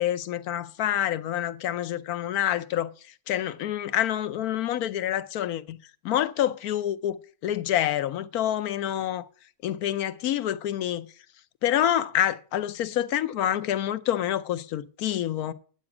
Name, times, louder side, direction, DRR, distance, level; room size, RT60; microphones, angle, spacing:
voice 1, 0.0-2.9 3.3-5.8 6.0-9.3 9.6-11.1 11.6-15.5, left 11 dB, 80° left, 1.2 m, -27 dB
9.7 x 8.7 x 5.9 m
omnidirectional pair, 1.6 m